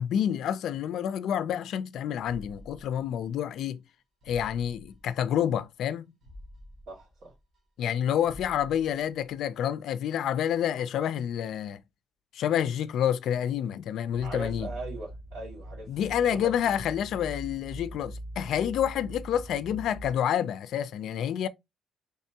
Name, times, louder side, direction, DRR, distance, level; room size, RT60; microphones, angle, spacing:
voice 1, 0.0-3.8 4.3-6.1 7.8-11.8 12.3-14.7 15.9-21.5, left 9 dB, 70° left, 0.3 m, -28 dB
sound 1, 2.2-3.6 3.9-4.0 4.2-5.6 5.9-6.0 6.2-7.9 8.2-9.6 9.9-10.0, left 1 dB, 45° right, 1.4 m, -50 dB
sound 2, 14.1-20.1, right 1 dB, ahead, 0.6 m, -42 dB
voice 2, 14.2-16.2 16.7-16.8, right 2 dB, 70° right, 2.0 m, -40 dB
3.4 x 3.4 x 2.7 m
cardioid pair, 165°, 0 cm